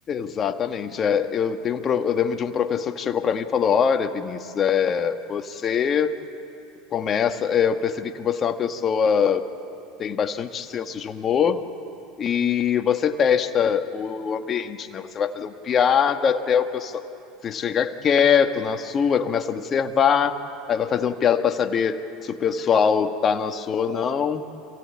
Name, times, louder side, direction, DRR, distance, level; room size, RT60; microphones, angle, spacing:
voice 1, 0.1-6.1 6.9-9.4 10.0-11.6 12.2-17.0 17.4-20.4 20.7-24.4, left 7 dB, 35° left, 7 dB, 1.3 m, -23 dB
27.0 x 16.5 x 8.6 m, 2.7 s
supercardioid pair, 105°, 0 cm